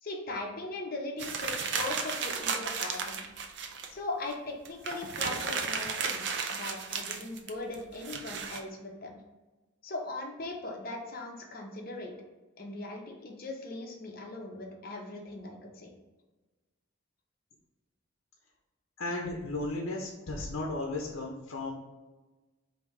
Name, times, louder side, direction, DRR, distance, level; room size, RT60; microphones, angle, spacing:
voice 1, 0.0-3.2 3.9-9.2 9.8-12.1 12.6-15.9, left 2 dB, 45° left, 0 dB, 0.8 m, -39 dB
sound 1, 1.2-3.9 4.3-4.4 4.7-8.6, right 5 dB, 55° right, 0.5 m, -34 dB
voice 2, 19.0-21.7, left 2 dB, 80° left, 0 dB, 0.7 m, -35 dB
5.0 x 2.8 x 3.2 m, 1.2 s
head